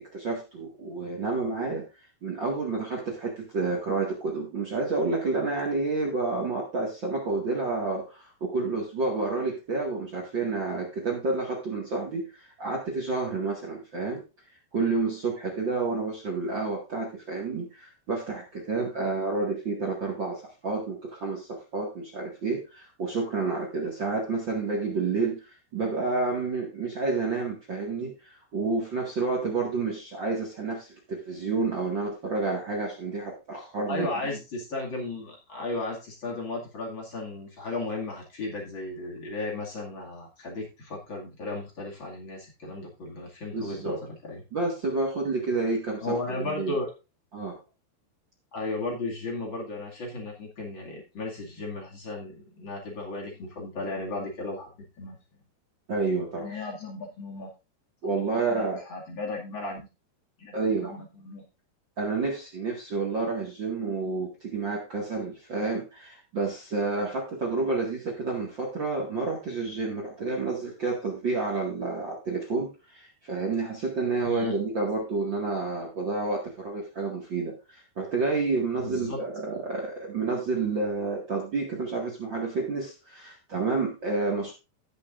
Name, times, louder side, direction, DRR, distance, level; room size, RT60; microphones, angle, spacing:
voice 1, 0.0-1.8 2.2-14.2 14.7-34.1 43.5-44.0 44.5-46.7 47.3-47.6 55.9-56.4 58.0-58.8 60.5-60.9 62.0-84.5, right 3 dB, 45° right, -1 dB, 1.5 m, -29 dB
voice 2, 33.9-44.4 46.0-46.9 48.5-55.2 56.4-57.5 58.0-59.9 60.4-61.4 74.2-74.6 78.8-79.2, left 2 dB, 35° left, -1 dB, 2.1 m, -35 dB
17.0 x 6.9 x 2.5 m, 0.28 s
omnidirectional pair, 5.0 m